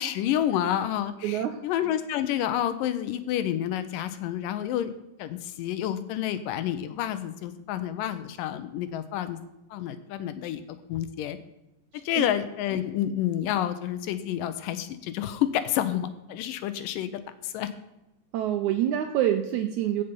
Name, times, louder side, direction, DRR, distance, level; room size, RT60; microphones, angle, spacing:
voice 1, 0.0-4.9 5.2-9.4 9.7-11.4 11.9-17.7, left 11 dB, 80° left, 12 dB, 2.2 m, -29 dB
voice 2, 1.2-1.6 12.1-12.3 18.3-20.0, right 11 dB, 80° right, 7 dB, 1.7 m, -26 dB
15.5 x 5.5 x 5.3 m, 0.94 s
omnidirectional pair, 4.1 m